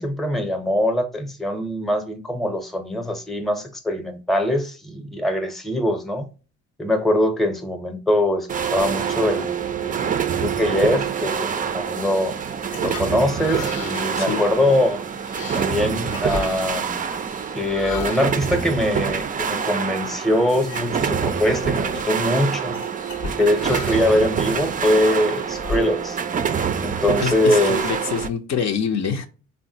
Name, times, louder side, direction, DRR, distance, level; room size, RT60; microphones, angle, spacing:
voice 1, 0.0-6.2 6.8-12.3 12.8-15.0 15.6-17.0 17.5-22.8 23.4-26.2 26.8-27.8, left 1 dB, ahead, 0.7 m, -22 dB
sound 1, 8.5-28.3, right 7 dB, 30° right, 0.3 m, -26 dB
sound 2, 12.4-19.5 20.0-20.2 20.6-21.2 21.4-22.1 22.7-24.2 24.8-26.4, left 4 dB, 80° left, 0.9 m, -36 dB
voice 2, 27.1-29.3, left 6 dB, 60° left, 0.6 m, -25 dB
3.6 x 2.2 x 2.7 m
cardioid pair, 90°, 30 cm